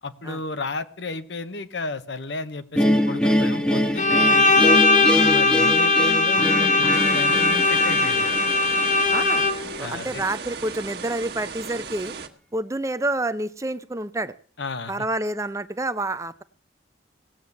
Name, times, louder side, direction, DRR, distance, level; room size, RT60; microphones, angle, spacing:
voice 1, 0.0-4.6 5.1-8.4 9.8-10.2 14.6-14.9, left 3 dB, 70° left, 11 dB, 1.0 m, -33 dB
sound 1, 2.8-9.9, equal, 5° left, 1.1 m, -25 dB
Bowed string instrument, 4.0-9.8, left 3 dB, 40° left, 0.8 m, -19 dB
sound 2, 6.9-12.3, right 5 dB, 55° right, 1.5 m, -36 dB
voice 2, 9.1-9.5 9.8-12.1 12.5-14.3 14.9-16.4, right 2 dB, 15° right, 12 dB, 0.6 m, -28 dB
18.0 x 8.1 x 7.1 m, 0.43 s
head